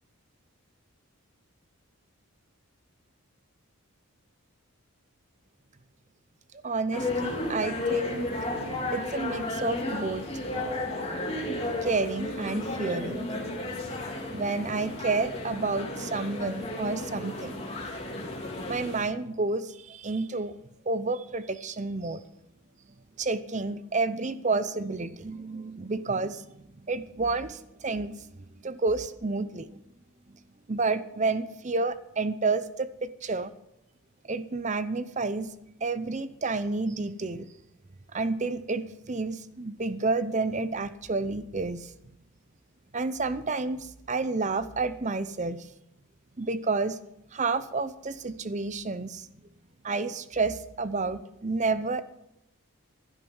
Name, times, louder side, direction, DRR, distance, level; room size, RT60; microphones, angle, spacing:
voice 1, 6.6-8.3 8.9-10.2 11.8-13.7 14.3-17.7 18.7-20.5 20.9-22.2 23.2-26.5 26.8-28.1 28.6-29.7 30.7-33.5 34.3-35.5 35.8-37.5 38.1-41.9 42.9-45.6 46.4-47.0 47.3-49.3 49.8-52.0, right 3 dB, 30° right, 13 dB, 0.7 m, -30 dB
sound 1, 6.9-19.0, left 2 dB, 25° left, 3.0 m, -33 dB
15.0 x 12.0 x 5.5 m, 0.84 s
head